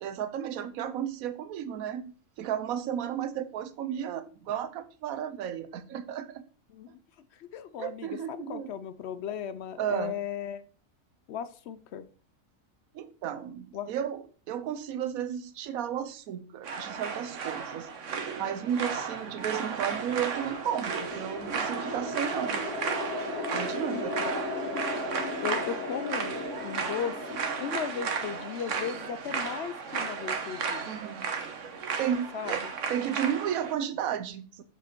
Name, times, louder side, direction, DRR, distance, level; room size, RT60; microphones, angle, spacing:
voice 1, 0.0-6.4 6.9-7.0 7.8-8.7 9.8-10.1 12.9-17.9 18.4-22.6 23.5-24.1 30.9-31.3 32.0-32.6 32.9-34.6, right 9 dB, 75° right, 1.1 m, -33 dB
voice 2, 7.3-10.6 11.3-12.1 13.7-13.9 23.9-24.0 25.4-30.9 32.3-32.7, left 8 dB, 65° left, 0.7 m, -36 dB
sound 1, 16.6-33.7, right 5 dB, 60° right, 1.3 m, -34 dB
sound 2, 19.2-29.6, left 2 dB, 85° left, 2.3 m, -37 dB
6.7 x 5.0 x 4.5 m
omnidirectional pair, 1.5 m